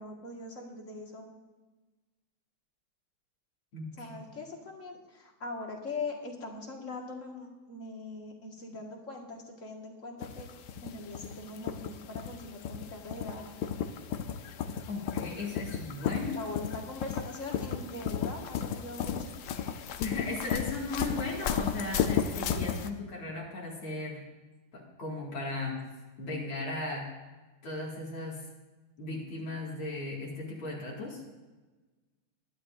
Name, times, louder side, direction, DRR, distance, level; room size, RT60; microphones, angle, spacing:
voice 1, 0.0-1.3 3.9-10.5 10.8-13.6 16.3-19.3, left 3 dB, 40° left, 0 dB, 2.0 m, -41 dB
voice 2, 3.7-4.2 14.9-16.4 20.0-24.2 24.7-25.8 26.2-27.1 27.6-28.4 29.0-31.2, left 2 dB, 90° left, -4 dB, 3.1 m, -36 dB
sound 1, 10.2-22.9, left 8 dB, 65° left, 1.2 m, -34 dB
21.0 x 11.5 x 2.6 m, 1.2 s
omnidirectional pair, 2.2 m